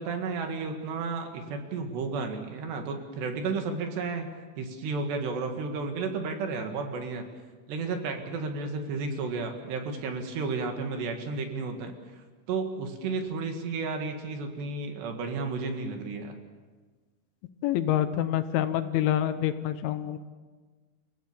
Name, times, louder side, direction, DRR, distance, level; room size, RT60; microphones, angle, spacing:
voice 1, 0.0-4.3 4.6-7.3 7.7-16.4, right 4 dB, 65° right, 5 dB, 3.7 m, -32 dB
voice 2, 17.6-20.2, left 11 dB, 80° left, 10 dB, 3.3 m, -27 dB
29.5 x 16.5 x 7.2 m, 1.4 s
omnidirectional pair, 5.6 m